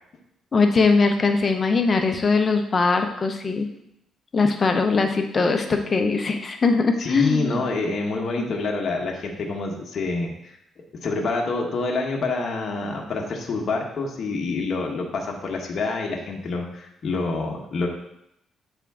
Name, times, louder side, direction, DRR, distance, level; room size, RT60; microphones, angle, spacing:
voice 1, 0.5-3.7 4.3-7.7 8.4-8.5, left 4 dB, 35° left, 5 dB, 0.8 m, -21 dB
voice 2, 7.0-10.5 11.0-17.9, left 3 dB, 50° left, 0 dB, 1.1 m, -27 dB
8.3 x 3.7 x 3.6 m, 0.78 s
cardioid pair, 90°, 0 cm